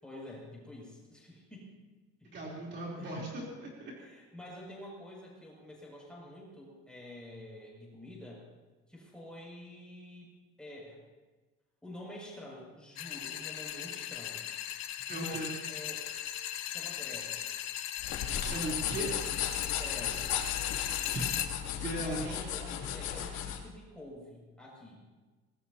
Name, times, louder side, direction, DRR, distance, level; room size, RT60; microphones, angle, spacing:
voice 1, 0.0-1.7 2.2-2.3 2.9-3.2 4.0-8.4 8.9-11.0 11.8-14.4 15.1-16.1 16.5-17.5 19.8-20.4 21.7-25.0, left 1 dB, 5° left, -4 dB, 6.5 m, -48 dB
voice 2, 2.3-3.9 15.1-15.5 18.4-19.1 21.1-21.4 21.8-22.4, right 1 dB, 35° right, -4 dB, 3.6 m, -37 dB
sound 1, 13.0-21.5, left 12 dB, 60° left, 1.1 m, -38 dB
sound 2, 18.0-23.6, left 9 dB, 80° left, 2.9 m, -35 dB
25.0 x 20.0 x 2.9 m, 1.3 s
cardioid pair, 165°, 29 cm